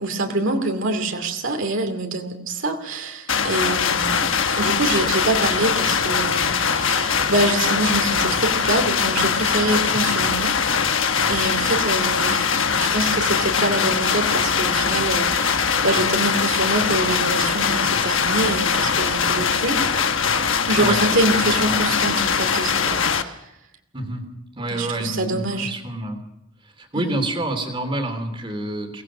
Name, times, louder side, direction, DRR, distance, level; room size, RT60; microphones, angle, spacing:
voice 1, 0.0-4.3 4.6-10.5 11.3-19.8 20.7-23.4 24.7-25.7 26.9-27.2, right 2 dB, 55° right, 5 dB, 2.5 m, -25 dB
sound 1, 3.3-23.2, left 6 dB, 60° left, 1.2 m, -21 dB
voice 2, 21.4-21.8 23.9-24.2 24.6-26.2 26.8-29.0, right 1 dB, 25° right, 5 dB, 3.0 m, -28 dB
23.0 x 18.5 x 6.2 m, 0.87 s
head